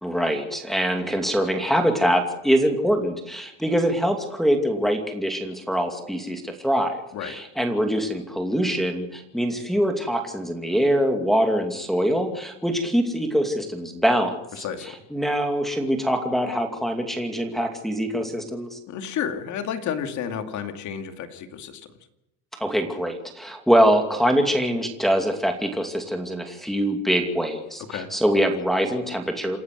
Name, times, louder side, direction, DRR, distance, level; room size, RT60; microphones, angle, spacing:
voice 1, 0.0-14.6 15.1-18.8 22.6-29.6, equal, ahead, 3 dB, 2.6 m, -24 dB
voice 2, 14.6-14.9 18.9-21.9 27.9-28.1, left 8 dB, 60° left, 7 dB, 2.3 m, -31 dB
28.0 x 12.0 x 7.8 m, 0.87 s
cardioid pair, 150°, 34 cm